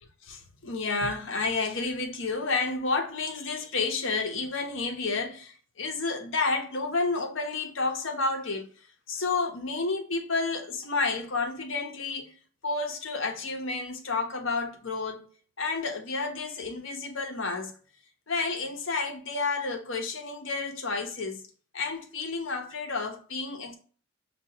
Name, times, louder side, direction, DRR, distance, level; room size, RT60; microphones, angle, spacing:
voice 1, 0.2-8.7 9.1-12.3 12.6-15.3 15.6-17.7 18.3-21.4 21.7-23.8, left 3 dB, 65° left, 0.8 m, -30 dB
6.4 x 2.4 x 2.8 m
head